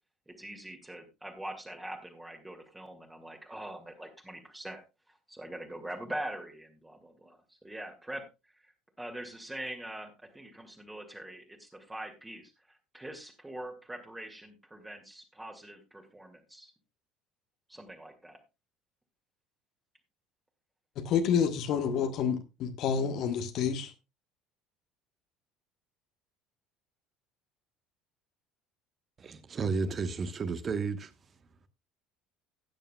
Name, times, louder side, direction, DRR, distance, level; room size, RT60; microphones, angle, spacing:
voice 1, 0.3-4.8 5.1-8.2 8.5-8.7 9.0-16.7 17.7-18.4, right 1 dB, 10° right, 2.1 m, -43 dB
voice 2, 21.0-23.9, left 7 dB, 50° left, 1.3 m, -28 dB
voice 3, 29.2-31.1, right 4 dB, 30° right, 1.2 m, -32 dB
17.0 x 9.0 x 2.3 m
figure-of-eight pair, 60°, 0 cm